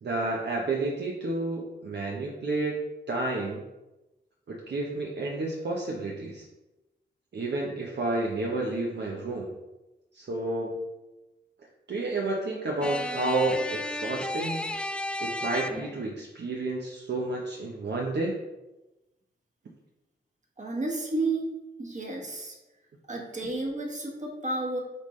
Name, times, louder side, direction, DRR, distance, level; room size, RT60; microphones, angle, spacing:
voice 1, 0.0-2.8 3.1-3.6 4.5-6.4 7.3-9.5 10.1-10.8 11.9-14.7 15.2-18.4, right 2 dB, 60° right, -2 dB, 0.9 m, -30 dB
sound 1, 12.8-16.1, left 1 dB, 5° left, 0.3 m, -33 dB
voice 2, 20.6-21.5 21.8-22.5 23.1-24.8, right 2 dB, 40° right, 0 dB, 1.5 m, -31 dB
8.0 x 3.6 x 3.2 m, 1.0 s
wide cardioid pair, 100°, 20 cm